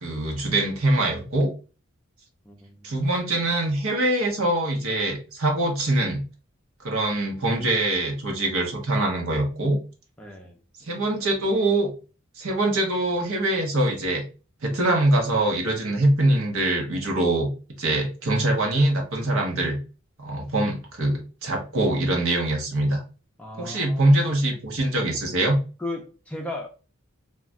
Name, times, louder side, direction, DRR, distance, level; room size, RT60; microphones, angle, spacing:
voice 1, 0.0-1.5 2.8-6.2 6.8-9.8 10.8-11.9 12.4-14.2 14.6-17.5 17.8-19.8 20.2-23.0 23.6-25.6, right 1 dB, 75° right, 1 dB, 0.9 m, -23 dB
voice 2, 2.5-2.9 10.2-10.6 23.4-24.1 25.8-26.7, left 1 dB, 5° left, 0 dB, 0.4 m, -36 dB
2.3 x 2.2 x 3.6 m, 0.34 s
head